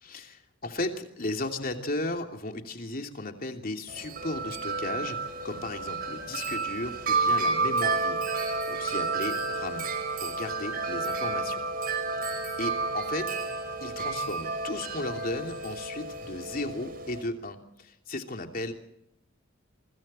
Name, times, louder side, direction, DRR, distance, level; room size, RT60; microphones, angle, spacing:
voice 1, 0.0-5.2 5.4-8.2 8.7-9.8 10.2-11.6 12.2-18.7, left 2 dB, 45° left, 4 dB, 2.9 m, -35 dB
Wind chime, 3.9-17.2, right 3 dB, 45° right, 5.2 m, -31 dB
28.0 x 24.5 x 4.4 m, 0.78 s
head